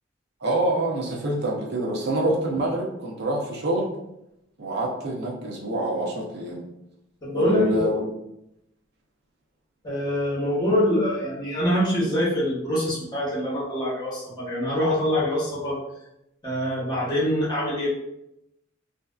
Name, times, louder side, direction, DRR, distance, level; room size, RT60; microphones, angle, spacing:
voice 1, 0.4-3.9 4.6-6.6 7.3-8.0, right 1 dB, 55° right, -2 dB, 0.6 m, -26 dB
voice 2, 7.2-7.9 9.8-15.8 16.4-17.9, equal, 20° left, -6 dB, 1.0 m, -24 dB
3.2 x 2.6 x 2.3 m, 0.84 s
head